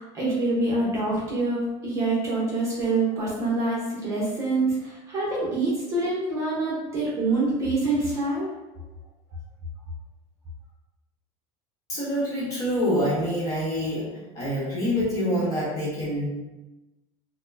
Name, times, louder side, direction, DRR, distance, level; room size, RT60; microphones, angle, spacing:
voice 1, 0.0-8.5, right 2 dB, 20° right, -6 dB, 1.0 m, -26 dB
voice 2, 11.9-16.3, equal, 25° left, -7 dB, 1.3 m, -26 dB
4.3 x 2.2 x 2.7 m, 1.0 s
cardioid pair, 155°, 13 cm